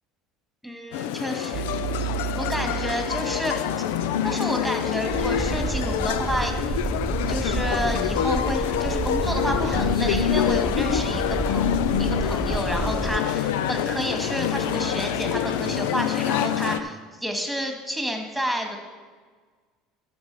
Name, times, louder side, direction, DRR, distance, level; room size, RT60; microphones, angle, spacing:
voice 1, 0.6-1.6 1.9-3.9 4.2-6.5 7.3-11.7 12.0-18.8, equal, ahead, 3 dB, 1.9 m, -30 dB
sound 1, 0.9-16.8, left 10 dB, 80° left, 0.5 m, -26 dB
sound 2, 1.5-15.9, right 12 dB, 60° right, 0.7 m, -37 dB
sound 3, 5.1-13.2, right 3 dB, 20° right, 0.4 m, -30 dB
12.0 x 6.0 x 5.6 m, 1.5 s
supercardioid pair, 85°, 0 cm